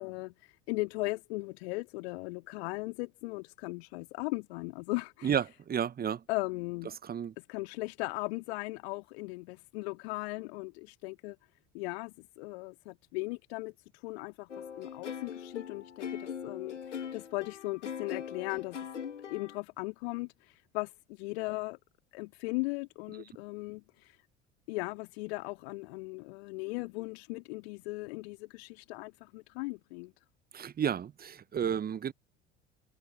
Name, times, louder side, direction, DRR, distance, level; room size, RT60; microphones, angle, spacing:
voice 1, 0.0-5.3 6.3-6.9 7.5-11.4 11.7-18.8 19.3-21.8 22.1-24.2 24.7-30.1, left 24 dB, 60° left, 2.2 m, -38 dB
voice 2, 5.2-6.2 7.0-7.3 30.5-32.1, right 8 dB, 25° right, 1.2 m, -32 dB
sound 1, 14.5-19.6, left 8 dB, 75° left, 2.2 m, -41 dB
figure-of-eight pair, 65°, 36 cm